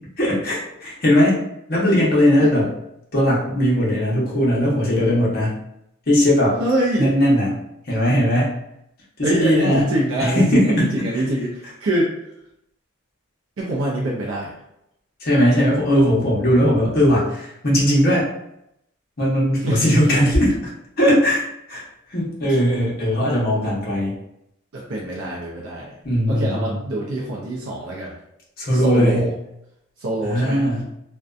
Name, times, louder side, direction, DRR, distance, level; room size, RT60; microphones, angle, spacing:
voice 1, 0.2-1.4 1.7-2.7 3.1-5.6 6.1-6.6 7.0-7.5 7.9-8.6 9.2-9.9 10.2-11.2 15.2-18.2 19.2-20.7 21.0-21.4 21.7-21.8 22.1-24.2 26.0-26.7 28.6-29.3 30.2-30.8, equal, 45° left, -5 dB, 0.8 m, -18 dB
voice 2, 6.6-7.1 9.2-12.1 13.6-14.5 19.6-19.8 22.5-22.6 23.5-23.8 24.7-25.9 26.3-28.1 28.7-29.3 30.0-30.6, right 1 dB, 60° right, -3 dB, 0.4 m, -24 dB
2.5 x 2.2 x 2.3 m, 0.80 s
head